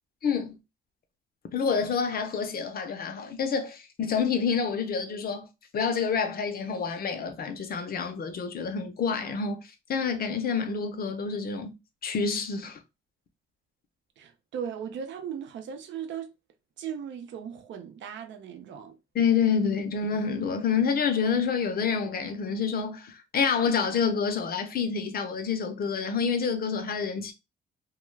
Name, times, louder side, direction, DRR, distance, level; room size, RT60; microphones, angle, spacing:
voice 1, 0.2-0.6 1.5-5.5 5.7-11.8 12.0-12.8 19.1-27.3, left 6 dB, 50° left, 0.6 m, -28 dB
voice 2, 14.2-16.3 16.8-19.0, right 8 dB, 70° right, 0.6 m, -37 dB
2.3 x 2.3 x 3.1 m
cardioid pair, 90°, 20 cm